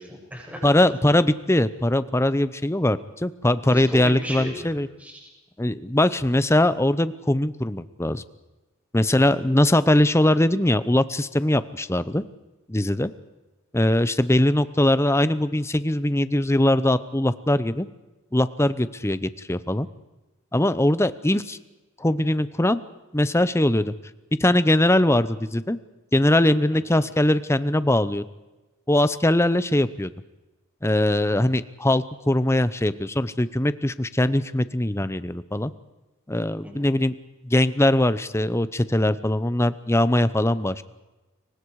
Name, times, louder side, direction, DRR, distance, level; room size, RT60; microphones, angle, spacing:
voice 1, 0.0-0.6 3.7-5.3 26.9-27.0 36.6-36.9, equal, 5° right, -2 dB, 7.9 m, -36 dB
voice 2, 0.6-4.9 5.6-8.2 8.9-12.2 12.7-13.1 13.7-17.9 18.3-19.9 20.5-21.6 22.0-22.8 23.1-23.9 24.4-25.8 26.1-28.2 28.9-30.1 30.8-35.7 36.3-37.1 37.4-40.8, left 1 dB, 15° left, 14 dB, 0.8 m, -21 dB
30.0 x 24.5 x 4.8 m, 1.1 s
head